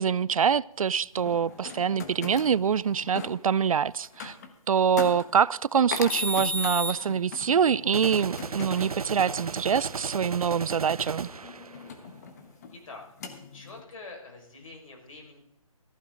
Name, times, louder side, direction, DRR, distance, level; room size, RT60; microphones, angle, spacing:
voice 1, 0.0-4.3 4.7-11.3, right 7 dB, 70° right, 22 dB, 0.4 m, -25 dB
sound 1, 1.2-3.3 4.0-4.5 5.0-5.2 5.9-9.2 11.1-12.7 13.2-13.8, left 3 dB, 30° left, 1.3 m, -35 dB
sound 2, 3.2-3.3 7.9-12.1, right 5 dB, 90° right, 0.9 m, -36 dB
voice 2, 12.7-13.1 13.5-15.4, left 3 dB, 65° left, 0 dB, 5.3 m, -45 dB
14.5 x 13.5 x 3.9 m, 0.80 s
hypercardioid pair, 165°, 18 cm